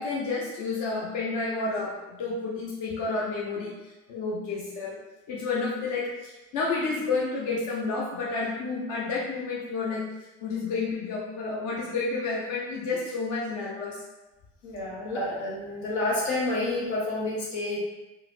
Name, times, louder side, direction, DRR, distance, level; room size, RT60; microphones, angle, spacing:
voice 1, 0.0-5.0 5.3-10.0 10.4-14.0, left 3 dB, 55° left, -5 dB, 0.8 m, -30 dB
voice 2, 14.6-17.8, left 2 dB, 80° left, -5 dB, 1.1 m, -29 dB
3.8 x 2.1 x 2.6 m, 1.1 s
hypercardioid pair, 75°, 36 cm